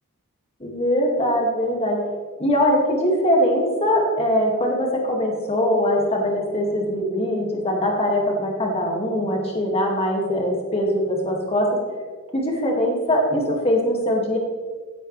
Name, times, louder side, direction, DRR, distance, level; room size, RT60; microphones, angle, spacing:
voice 1, 0.6-2.0 2.4-11.7 12.3-14.4, equal, 25° left, -1 dB, 2.1 m, -22 dB
16.5 x 8.5 x 3.3 m, 1.5 s
head